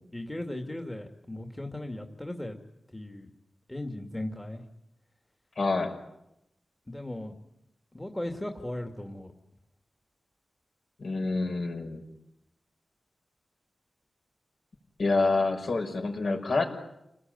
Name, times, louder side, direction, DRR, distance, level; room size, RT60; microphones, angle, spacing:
voice 1, 0.1-2.6 2.9-3.3 3.7-4.6 6.9-7.4 7.9-9.3, left 1 dB, 10° left, 3 dB, 2.4 m, -37 dB
voice 2, 5.6-5.9 11.0-12.0 15.0-16.6, left 3 dB, 60° left, 3 dB, 6.1 m, -27 dB
30.0 x 19.5 x 9.5 m, 0.84 s
wide cardioid pair, 115°, 0 cm